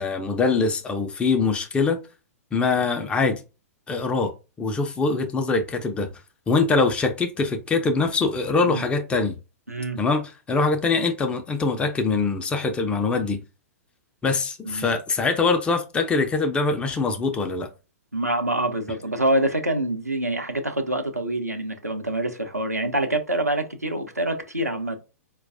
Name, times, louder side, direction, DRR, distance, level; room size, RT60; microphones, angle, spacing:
voice 1, 0.0-2.0 2.5-3.4 3.9-4.3 4.6-6.1 6.5-9.4 10.0-13.4 14.2-17.7, left 4 dB, 15° left, 0.5 m, -23 dB
voice 2, 9.7-10.0 14.6-14.9 18.1-25.0, right 1 dB, 90° right, 0.7 m, -26 dB
4.4 x 2.3 x 2.5 m
figure-of-eight pair, 110°, 8 cm